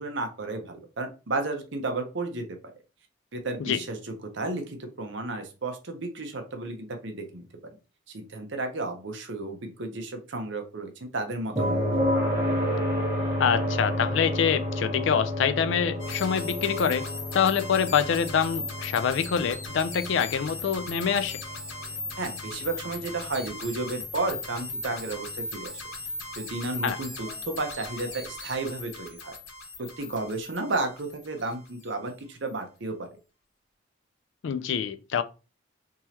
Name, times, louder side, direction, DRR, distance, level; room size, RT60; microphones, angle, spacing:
voice 1, 0.0-2.5 3.3-7.4 8.1-12.0 22.2-25.8 26.4-29.3 29.8-33.1, right 2 dB, 65° right, 0.8 m, -33 dB
sound 1, 11.6-25.4 27.6-27.7, left 1 dB, 20° right, 1.4 m, -31 dB
voice 2, 13.4-17.0 17.3-21.4 26.8-27.0 34.4-35.2, left 7 dB, 65° left, 0.3 m, -25 dB
sound 2, 16.0-31.9, left 2 dB, 85° left, 1.9 m, -39 dB
3.6 x 2.9 x 2.8 m
head